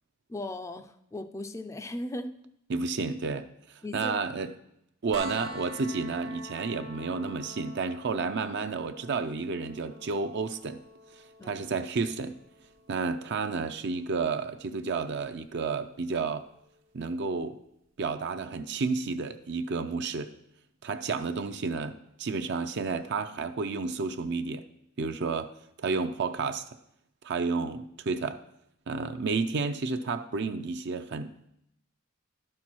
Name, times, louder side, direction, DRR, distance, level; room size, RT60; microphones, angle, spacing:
voice 1, 0.3-2.4 3.8-4.1 11.4-11.6, left 1 dB, 15° left, 9 dB, 0.4 m, -37 dB
voice 2, 2.7-4.5 5.0-10.8 11.4-12.4 12.9-16.5 16.9-17.6 18.0-20.3 20.8-24.6 25.0-25.5 25.8-26.6 27.2-28.4 28.9-31.3, right 4 dB, 60° right, 8 dB, 0.5 m, -31 dB
sound 1, 5.1-16.9 18.9-19.0, equal, 80° right, 1.3 m, -47 dB
11.5 x 4.4 x 6.1 m, 0.76 s
head